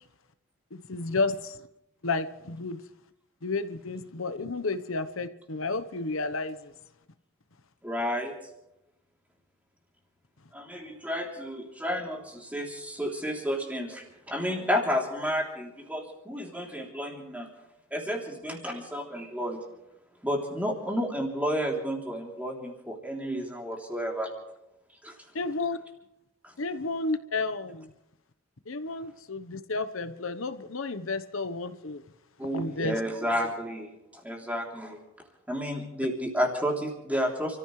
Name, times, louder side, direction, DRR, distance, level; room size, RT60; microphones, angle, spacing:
voice 1, 0.7-1.7 2.0-2.8 3.4-6.7 25.3-25.8 26.6-27.9 28.7-32.0 32.5-33.0, left 3 dB, 75° left, 12 dB, 1.1 m, -32 dB
voice 2, 7.8-8.3 10.5-17.5 17.9-19.6 20.2-24.3 25.0-25.2 32.4-35.0 35.5-37.6, equal, 5° right, 0 dB, 3.3 m, -31 dB
29.5 x 14.5 x 3.3 m, 0.89 s
head